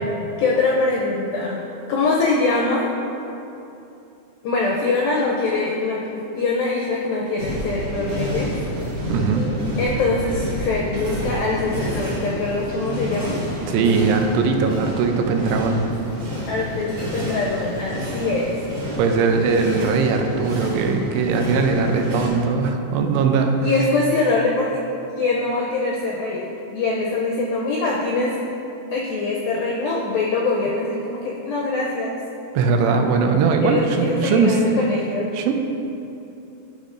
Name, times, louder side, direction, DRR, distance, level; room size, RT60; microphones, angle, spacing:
voice 1, 0.4-1.6 1.9-2.9 4.4-6.0 6.4-8.5 9.8-13.4 16.5-18.6 23.6-24.8 25.2-26.5 26.7-28.4 28.9-32.2 33.6-35.3, left 3 dB, 80° left, -3 dB, 2.1 m, -23 dB
sound 1, 7.4-22.3, equal, 55° right, 1.4 m, -29 dB
voice 2, 9.1-9.5 13.7-15.9 19.0-23.6 32.5-34.6 35.3-35.5, right 5 dB, 85° right, 4 dB, 2.7 m, -20 dB
11.5 x 6.4 x 2.5 m, 2.9 s
omnidirectional pair, 4.8 m